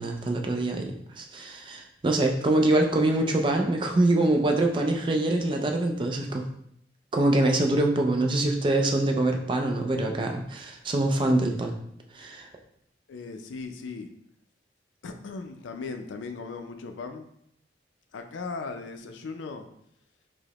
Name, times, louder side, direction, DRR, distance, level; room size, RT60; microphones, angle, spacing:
voice 1, 0.0-6.5 7.1-11.7 12.1-12.5, right 2 dB, 25° right, 3 dB, 0.3 m, -24 dB
voice 2, 13.1-14.1 15.0-17.3 18.1-19.6, left 4 dB, 80° left, 6 dB, 0.4 m, -37 dB
4.7 x 2.1 x 2.9 m, 0.71 s
head